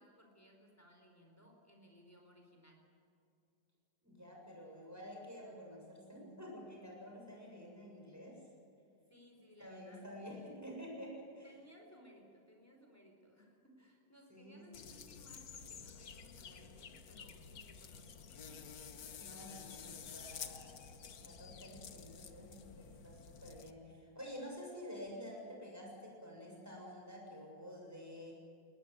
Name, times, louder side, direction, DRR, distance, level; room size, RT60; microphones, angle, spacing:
voice 1, 0.0-2.8 9.1-10.1 11.4-18.7, equal, 10° left, 2 dB, 4.4 m, -62 dB
voice 2, 4.0-8.4 9.6-11.5 14.3-15.1 19.2-28.3, equal, 10° right, -1 dB, 6.9 m, -50 dB
sound 1, 14.7-23.7, left 6 dB, 55° left, 1.6 m, -51 dB
20.0 x 20.0 x 9.4 m, 2.6 s
omnidirectional pair, 2.1 m